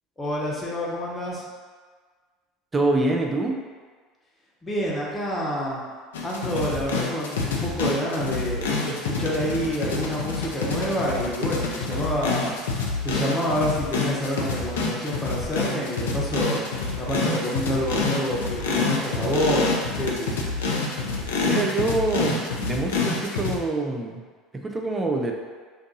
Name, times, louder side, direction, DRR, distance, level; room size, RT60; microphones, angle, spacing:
voice 1, 0.2-1.4 4.6-5.8 6.2-12.5 13.0-16.6 17.0-20.4, equal, 20° left, -4 dB, 1.0 m, -28 dB
voice 2, 2.7-3.6 21.4-24.2 24.5-25.3, right 2 dB, 20° right, 1 dB, 0.5 m, -25 dB
sound 1, 6.1-23.6, left 3 dB, 80° left, 0.5 m, -27 dB
2.6 x 2.6 x 3.9 m, 1.5 s
hypercardioid pair, 75°, 0 cm